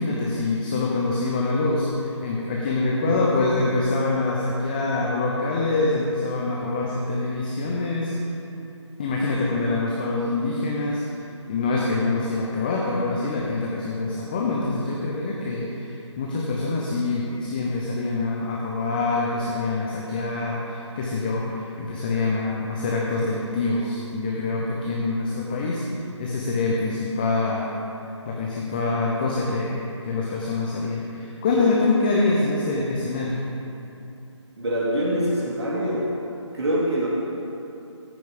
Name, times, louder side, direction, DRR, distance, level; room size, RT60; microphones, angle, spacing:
voice 1, 0.0-8.1 9.0-11.0 11.5-25.8 26.2-27.7 28.3-33.4, left 3 dB, 20° left, -3 dB, 0.7 m, -25 dB
voice 2, 2.8-3.1 34.6-36.1 36.5-37.1, right 1 dB, 60° right, -6 dB, 2.4 m, -25 dB
14.0 x 6.1 x 5.2 m, 2.8 s
figure-of-eight pair, 155°, 16 cm